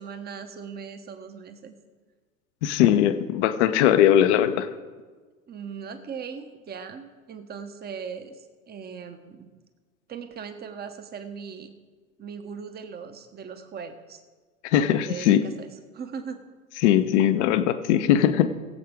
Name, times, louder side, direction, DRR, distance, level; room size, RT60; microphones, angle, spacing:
voice 1, 0.0-1.8 5.5-9.5 10.1-11.7 12.2-14.2 14.8-16.4, right 6 dB, 20° right, 9 dB, 1.2 m, -39 dB
voice 2, 2.6-4.7 14.6-15.4 16.8-18.5, left 10 dB, 55° left, 10 dB, 1.0 m, -20 dB
21.0 x 7.7 x 3.7 m, 1.4 s
figure-of-eight pair, 85°, 42 cm